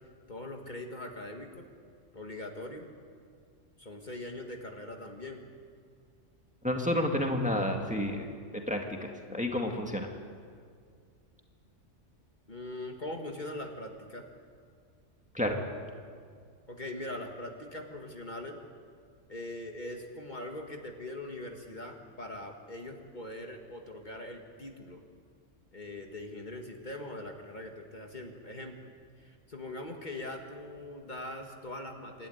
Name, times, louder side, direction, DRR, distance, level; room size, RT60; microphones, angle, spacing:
voice 1, 0.3-1.7 2.1-2.9 3.8-5.4 12.5-14.3 16.7-18.6 19.3-25.0 25.7-28.9 29.2-32.3, left 1 dB, 40° left, 2 dB, 1.8 m, -41 dB
voice 2, 6.6-10.1 15.3-15.6, left 1 dB, 5° right, 2 dB, 1.8 m, -31 dB
27.0 x 12.5 x 9.4 m, 2.1 s
omnidirectional pair, 1.2 m